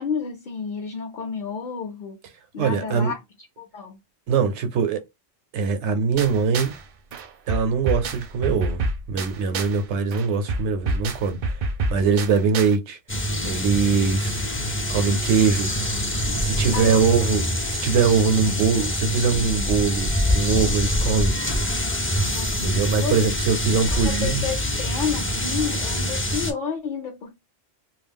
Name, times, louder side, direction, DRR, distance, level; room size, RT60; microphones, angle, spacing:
voice 1, 0.0-2.2 2.5-3.2 3.6-4.0 16.7-17.3 22.3-23.2 23.9-27.3, left 6 dB, 55° left, 0.7 m, -31 dB
voice 2, 2.6-3.1 4.3-5.0 5.5-6.7 7.5-11.5 11.9-13.0 13.4-14.4 14.9-15.7 16.4-17.4 17.7-21.3 22.6-24.4, right 5 dB, 90° right, 0.9 m, -22 dB
sound 1, 6.2-6.8 7.1-9.8 10.1-12.8, right 2 dB, 60° right, 0.5 m, -28 dB
sound 2, 13.1-26.5, equal, 20° left, 0.3 m, -25 dB
2.3 x 2.0 x 3.4 m
omnidirectional pair, 1.1 m